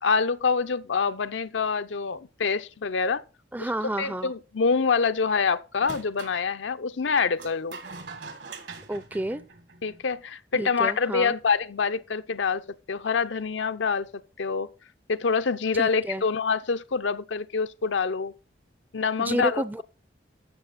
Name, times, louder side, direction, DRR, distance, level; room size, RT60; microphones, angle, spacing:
voice 1, 0.0-3.2 3.6-3.7 4.0-7.8 9.8-12.6 12.9-14.1 14.4-14.7 15.1-18.3 18.9-19.8, left 5 dB, 80° left, 0.6 m, -26 dB
voice 2, 3.5-4.3 8.9-9.4 10.6-11.4 15.7-16.2 19.2-19.8, right 1 dB, 10° right, 0.4 m, -30 dB
sound 1, 5.8-6.4 7.4-10.1, right 4 dB, 70° right, 1.9 m, -42 dB
12.5 x 7.2 x 4.1 m
head